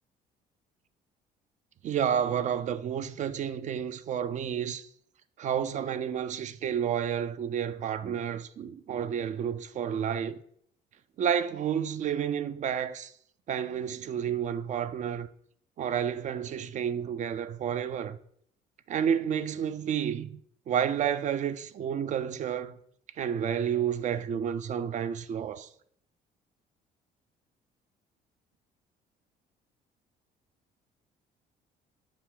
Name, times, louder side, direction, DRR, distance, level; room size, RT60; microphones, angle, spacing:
voice 1, 1.8-4.9 5.4-10.4 11.2-13.1 13.5-15.3 15.8-18.2 18.9-20.4 20.7-22.8 23.2-25.7, right 8 dB, 45° right, 0.4 m, -30 dB
7.3 x 4.1 x 3.7 m
cardioid pair, 110°, 17 cm